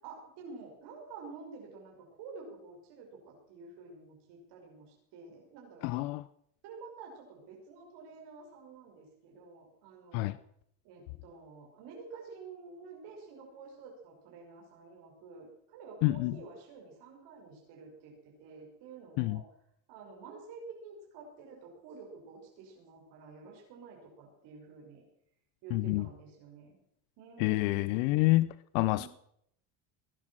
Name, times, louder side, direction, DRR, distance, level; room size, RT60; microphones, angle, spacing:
voice 1, 0.0-6.0 6.6-10.3 10.8-19.4 19.9-25.0 25.6-26.8 27.2-28.2 28.9-29.1, right 4 dB, 70° right, 5.8 m, -50 dB
voice 2, 5.8-6.3 10.1-10.4 16.0-16.4 19.2-19.4 25.7-26.1 27.4-28.5 28.7-29.1, left 19 dB, 80° left, 0.7 m, -28 dB
19.5 x 11.5 x 6.2 m
supercardioid pair, 110°, 42 cm